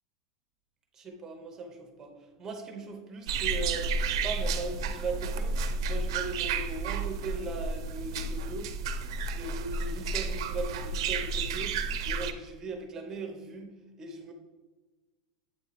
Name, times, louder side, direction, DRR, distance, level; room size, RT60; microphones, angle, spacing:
voice 1, 0.9-8.7 9.3-14.3, right 3 dB, 15° right, 3 dB, 0.8 m, -39 dB
sound 1, 3.3-12.3, right 4 dB, 70° right, 0.5 m, -31 dB
8.0 x 2.9 x 4.1 m, 1.2 s
supercardioid pair, 170°, 3 cm